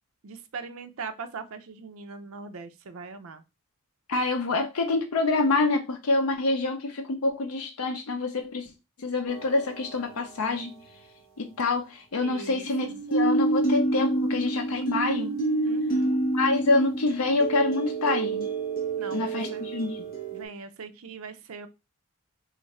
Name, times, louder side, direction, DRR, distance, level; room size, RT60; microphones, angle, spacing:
voice 1, 0.2-3.4 12.2-13.0 15.6-16.2 19.0-19.7 20.3-21.7, right 4 dB, 70° right, 0.5 m, -41 dB
voice 2, 4.1-8.7 9.0-10.7 11.4-15.3 16.3-18.5 19.1-20.0, left 3 dB, 80° left, 0.6 m, -26 dB
sound 1, 9.3-10.1 12.7-20.4, right 2 dB, 40° left, 1.1 m, -28 dB
3.1 x 2.4 x 4.1 m
head